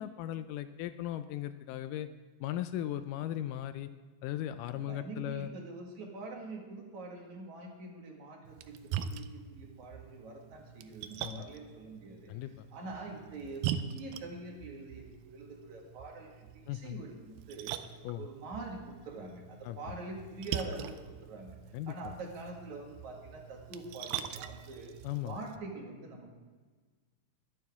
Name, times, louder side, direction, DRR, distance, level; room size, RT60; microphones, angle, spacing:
voice 1, 0.0-2.1 2.4-3.9 4.2-5.5 11.2-11.5 12.3-12.7 16.7-17.0 18.0-18.2 19.6-20.0 21.7-22.1 25.0-25.4, left 12 dB, 80° left, 10 dB, 2.0 m, -37 dB
voice 2, 4.7-12.3 12.7-17.8 18.2-21.6 21.9-25.0 25.2-26.4, right 3 dB, 60° right, 0 dB, 3.1 m, -45 dB
Splash splatter, 8.4-25.6, right 9 dB, 85° right, 2.4 m, -43 dB
22.0 x 9.2 x 3.6 m, 1.4 s
omnidirectional pair, 4.0 m